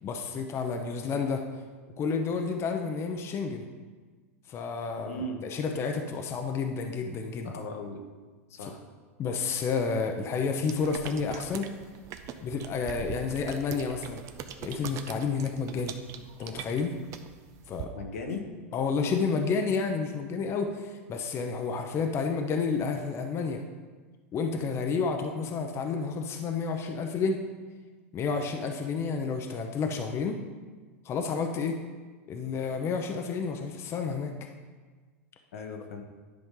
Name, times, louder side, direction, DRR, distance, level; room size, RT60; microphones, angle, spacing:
voice 1, 0.0-1.4 2.0-3.6 4.5-7.5 8.6-8.7 9.2-11.7 12.4-14.2 14.6-15.9 16.4-17.0 17.7-17.9 18.7-23.6 24.3-27.4 28.1-30.4 31.0-31.8 32.3-34.3, left 5 dB, 35° left, 4 dB, 0.7 m, -30 dB
voice 2, 5.1-5.4 7.4-8.0 8.5-8.8 17.9-18.4 35.5-36.0, left 2 dB, 80° left, 3 dB, 1.2 m, -37 dB
sound 1, 10.6-17.8, right 8 dB, 45° right, 0.6 m, -42 dB
10.5 x 5.2 x 3.8 m, 1.4 s
hypercardioid pair, 105°, 8 cm